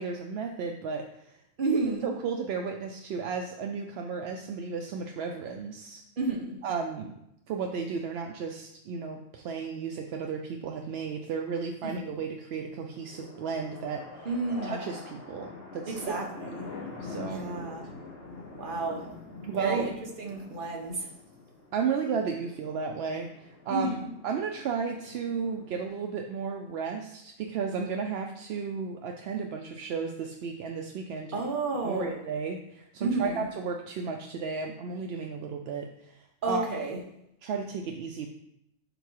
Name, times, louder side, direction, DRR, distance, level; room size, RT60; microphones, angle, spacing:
voice 1, 0.0-1.3 2.0-6.0 6.6-7.1 7.5-14.3 14.6-16.0 16.4-16.5 17.0-17.5 19.4-19.9 21.7-24.0 24.2-31.3 31.8-36.2 36.5-36.7 37.4-38.3, right 5 dB, 65° right, 3 dB, 0.7 m, -34 dB
voice 2, 1.6-2.1 6.2-6.6 11.8-12.2 14.2-14.8 15.9-16.6 17.3-17.9 18.6-19.1 19.6-19.9 20.2-21.1 23.7-24.1 31.3-32.1 33.0-33.5 36.4-37.0, right 3 dB, 40° right, 0 dB, 1.1 m, -31 dB
sound 1, 12.9-25.8, left 3 dB, 45° left, 1.5 m, -45 dB
5.3 x 4.6 x 4.6 m, 0.81 s
omnidirectional pair, 1.4 m